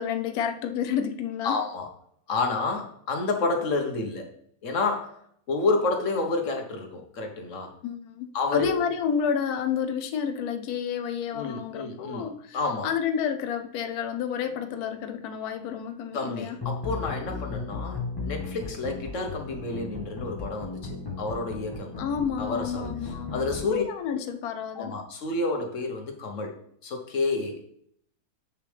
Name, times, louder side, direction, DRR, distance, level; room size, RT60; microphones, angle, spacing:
voice 1, 0.0-1.6 7.8-12.6 12.8-16.6 22.0-25.0, left 7 dB, 75° left, 8 dB, 1.2 m, -30 dB
voice 2, 1.4-1.9 2.3-4.3 4.6-5.1 5.5-7.7 8.3-8.7 11.3-12.3 12.5-12.9 16.1-22.1 22.4-22.9 23.3-23.8 24.7-26.6 26.8-27.6, left 3 dB, 55° left, 4 dB, 1.5 m, -29 dB
sound 1, 16.6-23.6, left 4 dB, 15° left, 1.2 m, -36 dB
7.6 x 6.6 x 3.4 m, 0.66 s
omnidirectional pair, 1.7 m